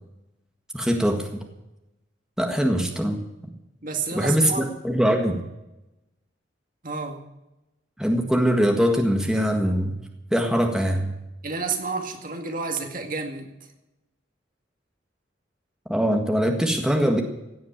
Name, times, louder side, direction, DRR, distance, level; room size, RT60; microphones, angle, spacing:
voice 1, 0.7-1.3 2.4-3.2 4.1-5.4 8.0-10.0 10.3-11.1 15.9-17.2, equal, 5° right, 2 dB, 1.7 m, -22 dB
voice 2, 3.8-4.7 6.8-7.2 11.4-13.5, right 4 dB, 50° right, 4 dB, 2.1 m, -30 dB
17.0 x 8.8 x 8.8 m, 0.94 s
head